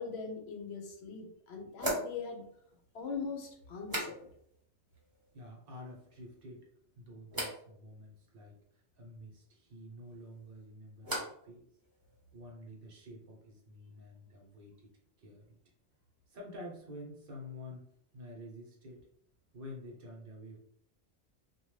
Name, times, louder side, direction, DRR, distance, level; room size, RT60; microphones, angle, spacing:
voice 1, 0.0-2.5 2.9-4.3, left 5 dB, 70° left, 2 dB, 0.8 m, -41 dB
sound 1, 0.5-0.6 1.8-4.6 4.9-5.5 5.8-6.4 7.3-7.6 10.0-11.5 11.8-12.4, right 1 dB, 20° right, 0.9 m, -41 dB
voice 2, 5.3-6.7 7.0-11.7 12.3-14.9 15.2-15.6 16.3-17.9 18.1-19.1 19.5-20.6, left 1 dB, 60° right, 0 dB, 0.9 m, -49 dB
2.7 x 2.2 x 3.1 m, 0.67 s
omnidirectional pair, 1.2 m